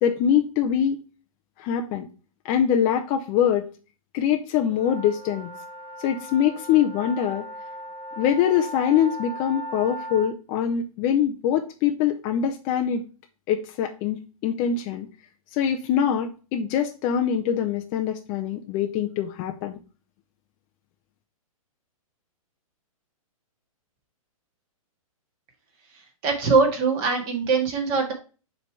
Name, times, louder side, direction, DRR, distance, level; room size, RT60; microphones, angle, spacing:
voice 1, 0.0-1.0 1.6-2.1 2.4-3.7 4.1-5.5 6.0-7.5 8.2-13.0 13.5-15.1 15.5-19.8, left 9 dB, 20° left, 4 dB, 0.3 m, -23 dB
sound 1, 4.7-10.3, equal, 45° right, 1.8 m, -38 dB
voice 2, 26.2-28.1, right 4 dB, 30° right, 1 dB, 1.7 m, -22 dB
6.5 x 3.2 x 4.5 m, 0.35 s
hypercardioid pair, 155°, 18 cm